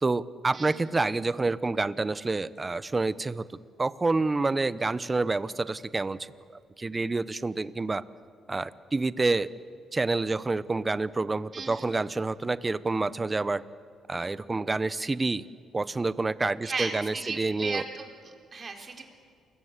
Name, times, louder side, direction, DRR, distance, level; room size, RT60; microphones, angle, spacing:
voice 1, 0.0-3.4 3.8-6.3 6.8-8.0 8.5-9.5 9.9-13.6 14.1-15.4 15.7-17.8, right 3 dB, 25° right, 16 dB, 0.9 m, -28 dB
voice 2, 0.5-0.8 11.5-11.9 16.6-19.0, right 4 dB, 40° right, 3 dB, 4.3 m, -36 dB
29.5 x 22.5 x 8.3 m, 2.2 s
cardioid pair, 90°, 0 cm